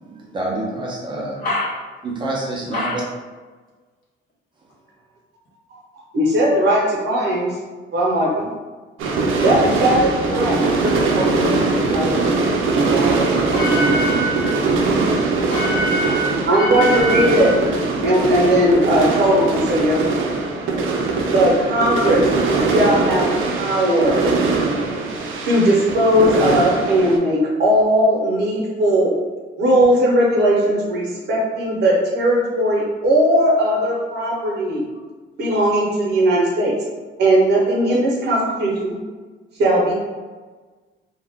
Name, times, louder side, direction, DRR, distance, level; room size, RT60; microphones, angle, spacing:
voice 1, 0.3-1.3 2.0-3.0, right 2 dB, 25° right, -4 dB, 0.5 m, -26 dB
voice 2, 6.1-7.5 7.9-8.5 9.4-11.6 11.9-13.3 16.5-17.6 18.0-20.3 21.3-22.2 22.7-24.2 25.4-29.1 29.6-34.8 35.4-36.7 37.2-39.0 39.6-39.9, right 1 dB, 55° right, -3 dB, 0.8 m, -18 dB
sound 1, 9.0-27.2, right 3 dB, 90° right, 0.5 m, -21 dB
voice 3, 13.5-14.6 15.5-17.6, equal, 45° left, -6 dB, 1.0 m, -24 dB
2.4 x 2.2 x 3.4 m, 1.4 s
cardioid pair, 175°, 20 cm